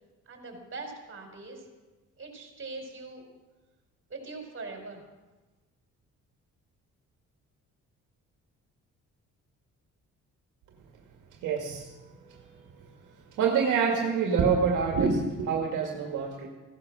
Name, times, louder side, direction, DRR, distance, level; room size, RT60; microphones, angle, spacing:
voice 1, 0.3-1.6 2.2-3.2 4.1-5.0, right 3 dB, 40° right, 2 dB, 4.9 m, -41 dB
voice 2, 11.4-11.9 13.4-16.5, right 5 dB, 85° right, 1 dB, 2.0 m, -26 dB
16.0 x 12.0 x 6.3 m, 1.2 s
cardioid pair, 90°, 30 cm